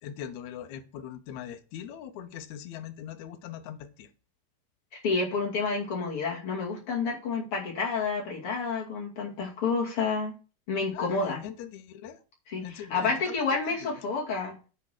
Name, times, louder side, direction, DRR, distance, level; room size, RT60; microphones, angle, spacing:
voice 1, 0.0-4.1 10.9-12.2 12.6-13.4 13.7-13.9, left 10 dB, 70° left, 9 dB, 1.9 m, -41 dB
voice 2, 4.9-10.3 10.7-11.4 12.5-14.6, left 4 dB, 40° left, -2 dB, 2.9 m, -29 dB
9.9 x 3.7 x 6.6 m, 0.35 s
omnidirectional pair, 4.1 m